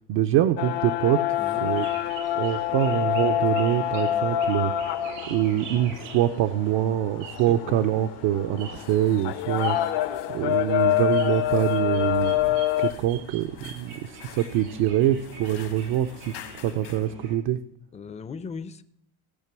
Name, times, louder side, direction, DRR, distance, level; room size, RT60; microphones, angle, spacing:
voice 1, 0.1-1.9 2.3-17.6, right 12 dB, 65° right, 7 dB, 0.7 m, -25 dB
sound 1, 0.6-12.9, left 12 dB, 55° left, 0.7 m, -27 dB
voice 2, 1.4-1.7 7.5-7.8 17.9-18.8, left 5 dB, 15° left, 13 dB, 0.5 m, -38 dB
sound 2, 1.6-17.3, right 4 dB, 85° right, 6.6 m, -44 dB
sound 3, 8.6-17.1, left 12 dB, 80° left, 1.8 m, -49 dB
16.0 x 6.7 x 6.0 m, 0.74 s
cardioid pair, 110°, 47 cm